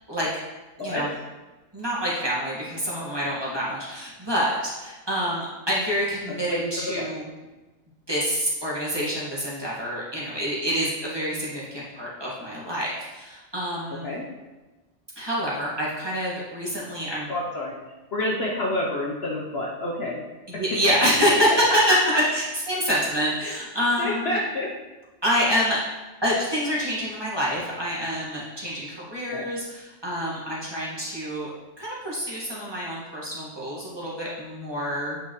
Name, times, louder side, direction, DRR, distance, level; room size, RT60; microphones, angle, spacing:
voice 1, 1.7-7.2 8.1-14.1 15.2-17.3 20.5-22.0 22.3-24.4 25.2-25.8 26.2-31.5 31.8-35.2, equal, 20° right, -7 dB, 1.8 m, -27 dB
voice 2, 6.3-7.1 13.9-14.2 17.3-17.7 18.1-20.2 20.5-20.6 21.9-22.2 23.4-23.5 24.0-24.7 29.3-29.5, left 1 dB, 50° left, -3 dB, 1.0 m, -28 dB
8.8 x 5.3 x 3.2 m, 1.2 s
omnidirectional pair, 1.4 m